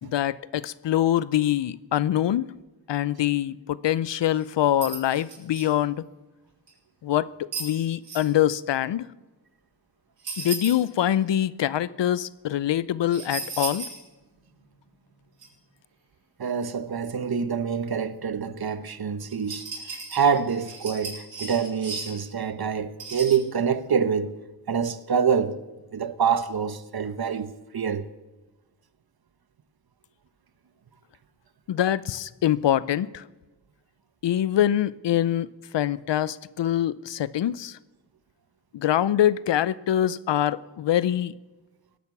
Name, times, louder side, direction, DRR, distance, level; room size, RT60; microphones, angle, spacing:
voice 1, 0.0-2.5 2.9-6.0 7.0-7.3 7.6-9.1 10.4-13.9 31.7-33.2 34.2-35.5 35.7-37.8 38.7-41.3, left 11 dB, 70° left, 0.6 m, -24 dB
sound 1, 4.3-4.4 4.8-5.7 6.7-6.8 7.5-8.2 10.2-11.1 13.1-14.0 14.4-14.5 15.4-15.5 19.2-22.3 23.0-23.4, right 4 dB, 85° right, 6.0 m, -35 dB
voice 2, 16.4-19.6 20.1-24.3 24.7-25.6 25.9-28.0, right 6 dB, 55° right, 1.0 m, -26 dB
17.5 x 10.5 x 7.2 m
cardioid pair, 65°, 44 cm